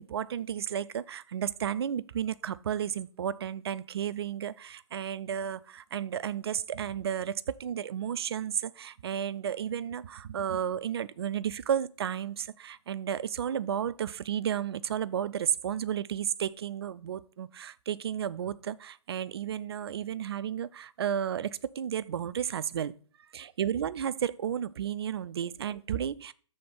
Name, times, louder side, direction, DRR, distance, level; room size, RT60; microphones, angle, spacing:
voice 1, 0.0-22.9 23.3-26.3, right 9 dB, 55° right, 0.4 m, -33 dB
6.8 x 3.5 x 5.2 m
figure-of-eight pair, 130°, 16 cm